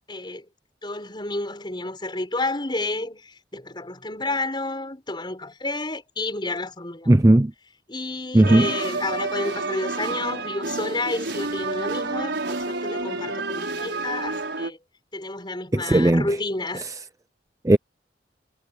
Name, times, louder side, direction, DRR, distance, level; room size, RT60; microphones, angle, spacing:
voice 1, 0.1-0.4 0.8-7.1 7.9-14.8 15.1-16.9, left 2 dB, 25° left, 6.0 m, -30 dB
voice 2, 7.1-7.5 8.3-8.7 15.7-16.3 17.6-17.8, right 1 dB, 20° right, 0.5 m, -16 dB
sound 1, 8.4-14.7, right 3 dB, 75° right, 5.1 m, -29 dB
head